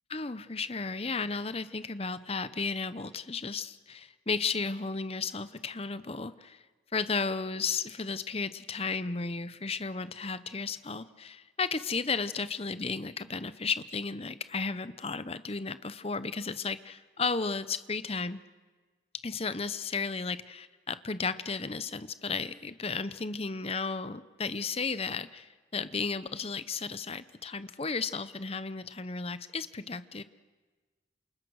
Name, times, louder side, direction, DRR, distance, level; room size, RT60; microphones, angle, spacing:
voice 1, 0.1-6.6 6.9-18.4 19.2-20.4 20.9-30.2, left 4 dB, 30° left, 14 dB, 0.8 m, -34 dB
28.5 x 27.5 x 6.5 m, 1.3 s
head